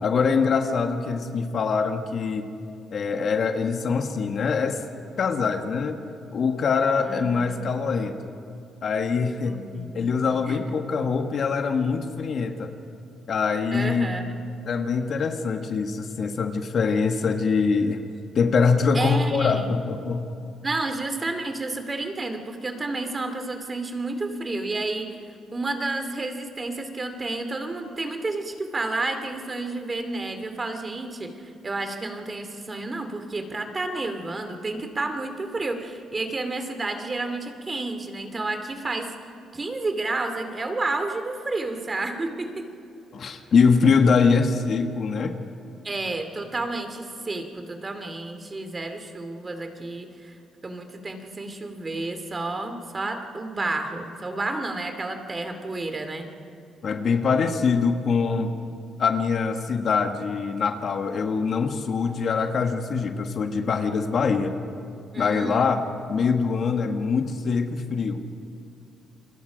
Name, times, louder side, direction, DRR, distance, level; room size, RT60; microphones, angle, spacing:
voice 1, 0.0-2.5 2.9-4.8 5.2-6.0 6.3-8.2 8.8-9.6 9.9-12.7 13.3-14.1 14.6-18.0 18.3-20.2 43.1-45.4 56.8-58.5 59.0-64.6 65.2-68.2, left 5 dB, 55° left, 6 dB, 1.5 m, -23 dB
voice 2, 7.0-7.6 9.4-10.6 13.7-14.3 18.9-19.7 20.6-25.2 25.5-39.1 39.5-42.7 45.8-50.4 50.6-56.3 65.1-65.7, right 2 dB, 30° right, 7 dB, 2.5 m, -31 dB
28.5 x 21.5 x 5.1 m, 2.6 s
cardioid pair, 90°, 0 cm